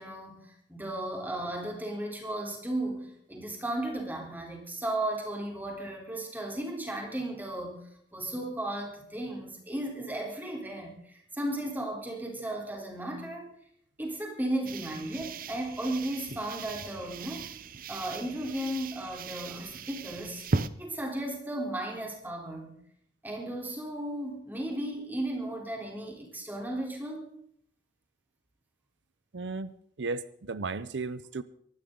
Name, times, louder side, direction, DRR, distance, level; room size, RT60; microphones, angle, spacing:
voice 1, 0.0-13.5 14.0-17.5 17.9-20.4 20.8-22.8 23.2-27.2, right 1 dB, 10° right, 3.9 m, -35 dB
sound 1, 14.6-20.7, right 3 dB, 50° right, 0.8 m, -37 dB
voice 2, 29.3-29.7 30.0-31.4, right 3 dB, 90° right, 0.7 m, -34 dB
24.0 x 12.5 x 3.9 m
head